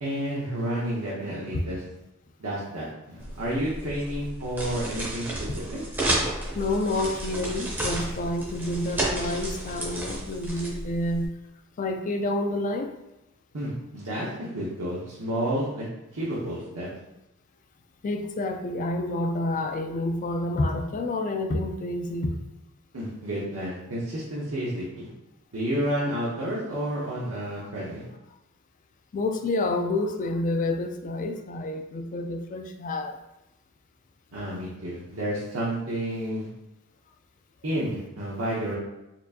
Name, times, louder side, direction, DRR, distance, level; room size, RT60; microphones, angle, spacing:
voice 1, 0.0-1.8 2.4-5.8 13.5-15.8 16.1-16.9 22.9-25.1 25.5-28.0 34.3-36.5 37.6-38.8, right 1 dB, 75° right, -7 dB, 0.8 m, -30 dB
sound 1, 3.2-11.3, right 1 dB, 10° right, 0.6 m, -32 dB
voice 2, 6.5-11.3 11.8-12.9 18.0-22.4 27.6-27.7 29.1-33.2, left 2 dB, 35° left, 6 dB, 0.3 m, -28 dB
4.3 x 2.5 x 2.7 m, 0.92 s
head